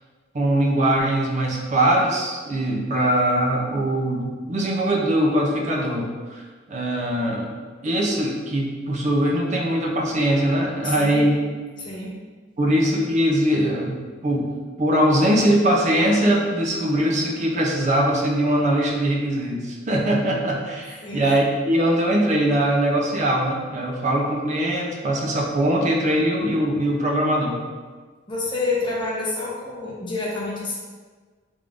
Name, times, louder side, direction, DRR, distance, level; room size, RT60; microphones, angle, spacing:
voice 1, 0.3-6.4 6.7-7.5 7.8-11.4 12.6-14.5 14.8-27.6, right 1 dB, 40° right, -1 dB, 0.5 m, -21 dB
voice 2, 10.8-11.3 11.8-12.1 21.0-21.3 28.3-30.7, left 3 dB, 25° left, -5 dB, 0.8 m, -28 dB
3.5 x 2.5 x 3.3 m, 1.4 s
head